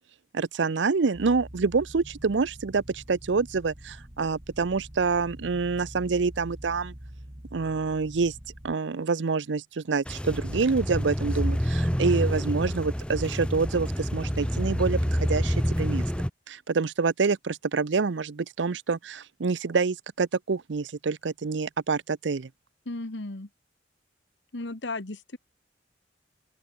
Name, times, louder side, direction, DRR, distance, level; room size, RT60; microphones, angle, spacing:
voice 1, 0.3-6.9 7.5-8.3 8.6-16.0 16.5-22.5, right 4 dB, 80° right, 0.6 m, -27 dB
sound 1, 1.1-8.7, equal, 30° right, 2.4 m, -45 dB
sound 2, 10.1-16.3, equal, 5° left, 1.3 m, -27 dB
voice 2, 22.8-23.5 24.5-25.4, left 2 dB, 80° left, 1.6 m, -35 dB
open air
head